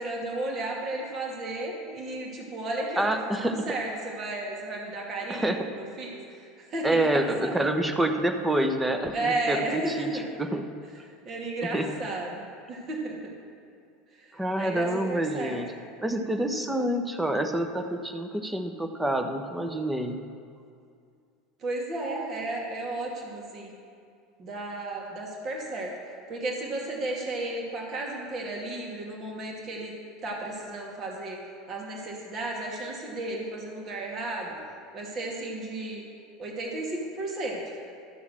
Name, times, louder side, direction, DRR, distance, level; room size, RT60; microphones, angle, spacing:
voice 1, 0.0-7.6 9.1-10.2 11.3-13.3 14.1-15.6 21.6-23.7 24.4-25.9 26.3-29.9 30.2-31.4 31.7-34.6 34.9-36.0 36.4-37.9, right 2 dB, 40° right, -1 dB, 2.2 m, -33 dB
voice 2, 3.0-3.7 5.3-5.6 6.8-10.1 10.4-10.6 11.7-11.9 14.3-15.7 16.0-20.2, right 1 dB, 10° right, 6 dB, 1.1 m, -27 dB
12.5 x 7.1 x 6.4 m, 2.4 s
figure-of-eight pair, 75°, 0 cm